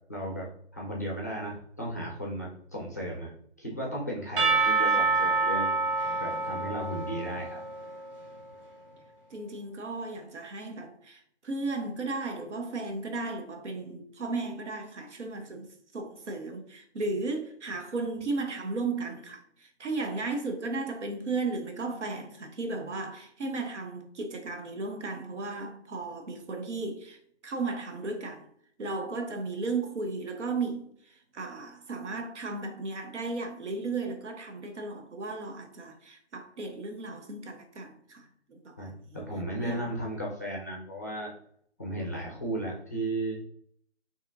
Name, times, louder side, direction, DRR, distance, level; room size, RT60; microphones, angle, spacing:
voice 1, 0.1-3.3 3.6-5.8 6.2-7.6 38.8-41.3 41.8-43.4, right 1 dB, 15° left, 0.4 m, -35 dB
Percussion / Church bell, 4.4-8.2, right 3 dB, 50° right, 1.2 m, -27 dB
voice 2, 9.3-28.5 28.8-39.2 39.6-39.8, right 3 dB, 85° right, 0.9 m, -35 dB
4.8 x 2.9 x 2.6 m
hypercardioid pair, 160°, 34 cm